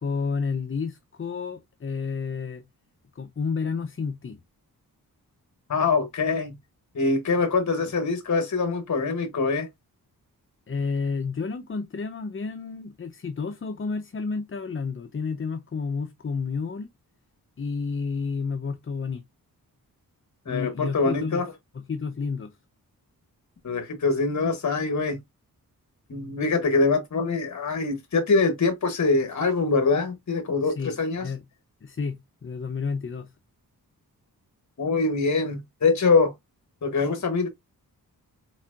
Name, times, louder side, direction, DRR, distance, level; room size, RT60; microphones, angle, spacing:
voice 1, 0.0-2.6 3.2-4.4 10.7-16.9 17.6-19.2 20.5-21.4 21.9-22.6 30.6-30.9 31.2-31.4 31.8-33.3, left 5 dB, 35° left, 0.6 m, -30 dB
voice 2, 5.7-6.5 6.9-9.7 20.5-21.5 23.6-25.2 26.1-31.3 34.8-36.3 36.8-37.5, left 4 dB, 50° left, 1.1 m, -24 dB
4.5 x 4.1 x 2.4 m
cardioid pair, 65°, 36 cm